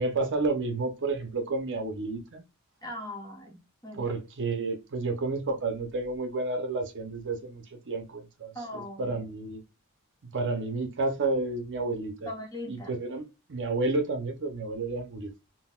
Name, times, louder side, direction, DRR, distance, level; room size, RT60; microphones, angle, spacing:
voice 1, 0.0-2.4 3.9-9.6 10.2-12.3 12.7-15.3, right 3 dB, 55° right, 0.6 m, -31 dB
voice 2, 2.8-4.2 8.5-9.2 12.3-13.0, left 1 dB, 20° left, 1.0 m, -40 dB
3.7 x 2.1 x 2.3 m
head